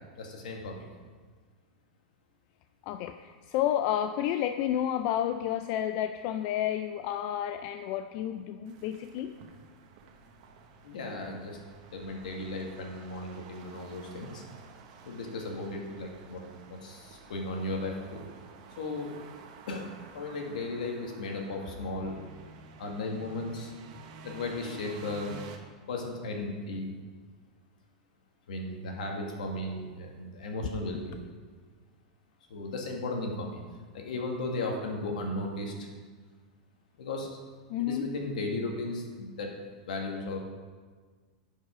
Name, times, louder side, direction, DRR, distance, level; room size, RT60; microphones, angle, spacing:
voice 1, 0.2-0.9 10.8-11.6 11.9-14.4 15.0-18.2 18.8-19.1 19.7-19.9 20.1-22.2 22.8-23.7 24.2-25.3 25.9-26.9 28.5-31.2 32.5-33.6 33.9-35.9 37.0-37.4 37.8-39.6 39.8-40.4, left 2 dB, 80° left, 1 dB, 1.9 m, -35 dB
voice 2, 2.8-9.3 37.7-38.1, left 11 dB, 50° left, 8 dB, 0.4 m, -30 dB
sound 1, 8.7-25.6, right 5 dB, 60° right, 1.2 m, -51 dB
10.5 x 5.5 x 5.0 m, 1.5 s
hypercardioid pair, 120°, 4 cm